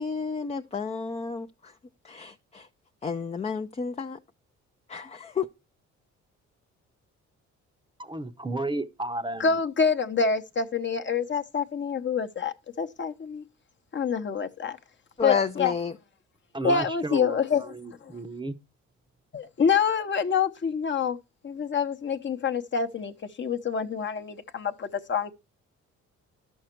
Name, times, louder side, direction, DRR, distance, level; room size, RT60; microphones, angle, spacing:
voice 1, 0.0-1.7 2.0-2.7 3.0-4.2 4.9-5.5 15.2-15.9, left 6 dB, 20° left, 0.5 m, -31 dB
voice 2, 8.0-9.6 16.5-18.6, right 2 dB, 15° right, 0.8 m, -33 dB
voice 3, 9.4-13.4 13.9-14.8 15.2-15.7 16.6-17.6 18.0-18.1 19.3-21.2 21.4-25.3, left 6 dB, 40° left, 0.9 m, -26 dB
11.0 x 6.4 x 4.5 m
cardioid pair, 90°, 30 cm